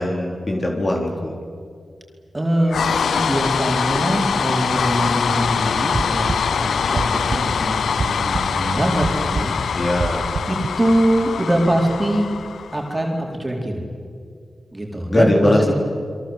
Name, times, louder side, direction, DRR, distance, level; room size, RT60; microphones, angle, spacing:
voice 1, 0.0-1.3 9.7-10.3 15.1-15.7, left 1 dB, 40° left, 0 dB, 4.0 m, -20 dB
voice 2, 2.3-9.5 10.5-12.3 12.7-13.9 14.7-15.7, right 1 dB, 20° right, 0 dB, 4.5 m, -23 dB
sound 1, 2.7-13.0, left 6 dB, 85° left, 0.7 m, -23 dB
sound 2, 5.8-10.7, right 4 dB, 60° right, 1.8 m, -28 dB
30.0 x 23.0 x 8.2 m, 2.2 s
cardioid pair, 55°, 0 cm